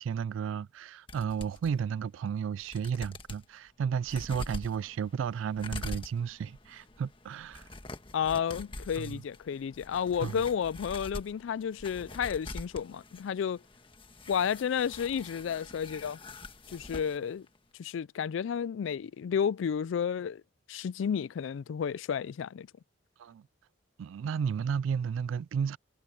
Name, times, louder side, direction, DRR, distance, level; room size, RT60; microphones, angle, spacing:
voice 1, 0.0-7.7 9.0-9.2 10.2-10.4 23.2-23.5 24.0-25.8, right 7 dB, 80° right, 0.3 m, -33 dB
sound 1, 1.1-1.7 2.3-2.4 2.6-3.4 4.0-17.2 17.5-17.6, left 2 dB, 25° left, 1.4 m, -45 dB
voice 2, 8.1-13.6 14.3-16.2 16.7-17.5 17.8-20.4 20.7-22.7, left 7 dB, 75° left, 0.3 m, -31 dB
head